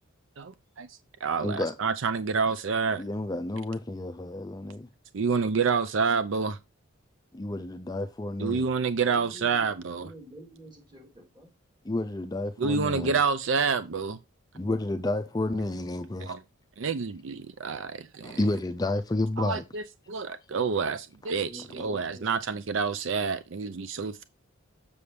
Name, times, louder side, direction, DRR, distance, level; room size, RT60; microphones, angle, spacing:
voice 1, 0.4-3.0 5.1-6.6 8.4-10.1 12.6-14.2 16.2-16.4 16.8-18.4 19.4-24.2, right 5 dB, 65° right, 0.5 m, -28 dB
voice 2, 1.4-1.7 3.0-4.9 7.3-8.7 11.8-13.2 14.5-16.3 18.2-19.6, left 2 dB, 20° left, 0.4 m, -30 dB
voice 3, 9.0-11.5 21.4-22.3, equal, 20° right, 3.0 m, -48 dB
7.0 x 6.8 x 3.3 m
head